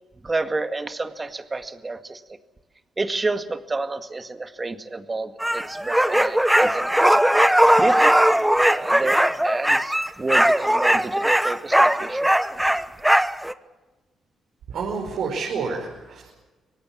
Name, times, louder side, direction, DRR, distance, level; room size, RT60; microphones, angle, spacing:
voice 1, 0.2-2.2 3.0-6.9 7.8-8.2 8.6-12.3, right 3 dB, 25° right, 8 dB, 1.9 m, -29 dB
sound 1, 5.4-13.5, right 1 dB, 5° right, 1.1 m, -19 dB
voice 2, 14.7-16.3, right 5 dB, 75° right, -1 dB, 4.9 m, -29 dB
25.0 x 18.0 x 7.4 m, 1.2 s
supercardioid pair, 70°, 0 cm